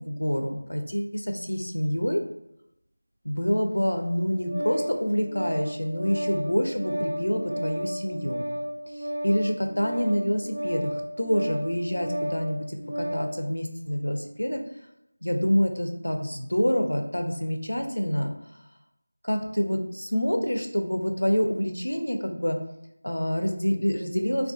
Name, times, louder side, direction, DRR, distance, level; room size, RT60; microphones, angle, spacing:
voice 1, 0.0-2.2 3.2-8.4 9.0-14.6 15.2-18.3 19.2-22.6 23.0-24.5, equal, 85° left, 4 dB, 0.4 m, -27 dB
Organ, 3.9-13.4, equal, 70° right, 0.6 m, -33 dB
2.3 x 2.2 x 2.4 m, 0.83 s
figure-of-eight pair, 170°, 0 cm